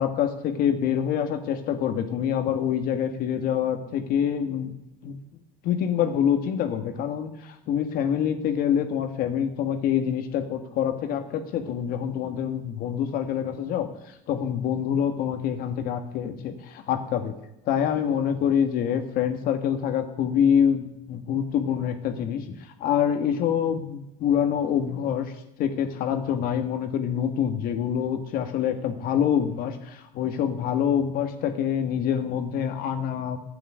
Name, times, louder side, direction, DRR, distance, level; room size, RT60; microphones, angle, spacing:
voice 1, 0.0-4.7 5.0-5.2 5.6-17.4 17.6-25.3 25.6-33.4, left 8 dB, 60° left, 7 dB, 1.7 m, -26 dB
11.0 x 9.0 x 10.0 m, 0.84 s
cardioid pair, 125°, 17 cm